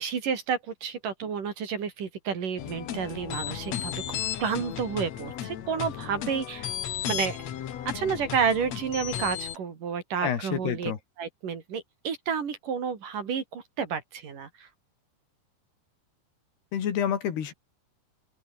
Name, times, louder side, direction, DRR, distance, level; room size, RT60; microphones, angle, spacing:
voice 1, 0.0-6.7 7.1-7.4 7.9-10.9 11.2-14.7, right 6 dB, 55° right, 4.5 m, -30 dB
sound 1, 2.6-9.6, left 10 dB, 55° left, 2.2 m, -34 dB
voice 2, 10.2-11.0 16.7-17.5, left 9 dB, 75° left, 4.8 m, -28 dB
open air
omnidirectional pair, 4.7 m